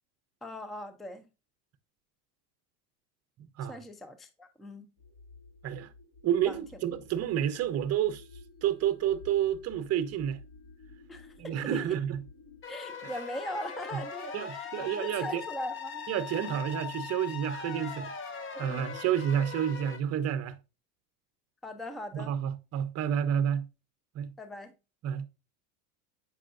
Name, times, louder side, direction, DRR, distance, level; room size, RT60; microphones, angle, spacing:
voice 1, 0.4-1.3 3.7-4.9 6.4-6.6 11.1-12.0 12.7-16.0 18.5-19.0 21.6-22.3 24.4-24.7, left 1 dB, ahead, 0.4 m, -40 dB
sound 1, 5.0-12.6, left 4 dB, 45° left, 2.1 m, -53 dB
voice 2, 6.2-8.2 8.6-10.4 11.4-12.2 13.0-13.1 14.3-15.4 16.1-18.1 18.6-20.6 22.1-23.7 24.1-24.3 25.0-25.3, right 10 dB, 35° right, 0.8 m, -30 dB
sound 2, 12.6-20.0, left 6 dB, 25° left, 1.0 m, -40 dB
7.4 x 5.5 x 2.5 m
supercardioid pair, 120°, 46 cm